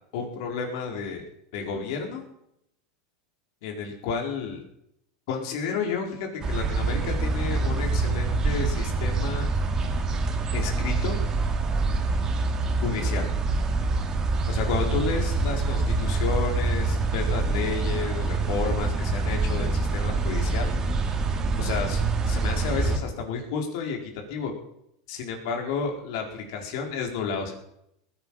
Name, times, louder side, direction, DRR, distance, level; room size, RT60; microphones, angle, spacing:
voice 1, 0.1-1.2 1.5-2.2 3.6-4.6 5.3-9.5 10.5-11.2 12.8-13.3 14.5-20.7 21.6-22.0 22.3-24.5 25.1-27.5, left 5 dB, 65° left, 2 dB, 4.4 m, -31 dB
sound 1, 6.4-23.0, right 3 dB, 25° right, 2.1 m, -25 dB
20.0 x 9.8 x 5.7 m, 0.76 s
supercardioid pair, 140°, 3 cm